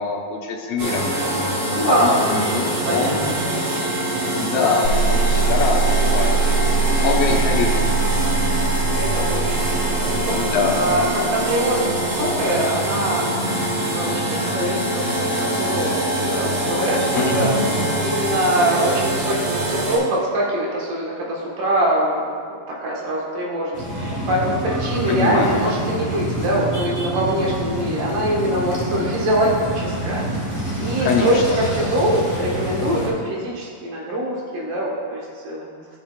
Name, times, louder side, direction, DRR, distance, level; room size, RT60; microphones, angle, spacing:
voice 1, 0.0-1.6 1.8-3.5 4.3-6.7 7.0-7.9 10.3-10.8 17.1-17.7 25.1-25.6 31.0-31.6, left 4 dB, 65° left, -2 dB, 1.8 m, -24 dB
sound 1, 0.8-20.0, right 1 dB, 50° right, 2.5 m, -24 dB
voice 2, 1.7-4.6 8.9-10.3 10.7-13.5 13.9-17.5 18.0-22.4 22.7-30.3 30.8-35.7, right 1 dB, 80° right, -4 dB, 3.1 m, -23 dB
sound 2, 4.8-12.0, right 4 dB, 90° left, 2.3 m, -22 dB
sound 3, 23.7-33.1, right 1 dB, 5° right, 1.3 m, -27 dB
14.0 x 6.4 x 2.4 m, 2.1 s
omnidirectional pair, 3.7 m